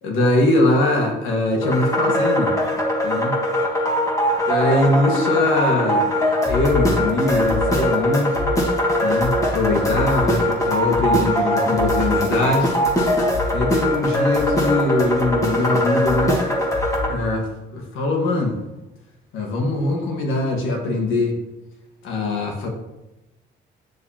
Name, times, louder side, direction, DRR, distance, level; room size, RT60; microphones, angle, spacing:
voice 1, 0.0-2.5 3.0-3.4 4.5-6.1 6.4-8.4 9.0-12.7 13.5-16.4 17.1-17.5 17.7-18.6 19.3-21.4 22.0-22.7, left 2 dB, 90° left, 2 dB, 1.5 m, -21 dB
sound 1, 1.6-17.1, equal, 15° left, 1.7 m, -21 dB
8.0 x 6.7 x 2.9 m, 0.98 s
cardioid pair, 90°, 20 cm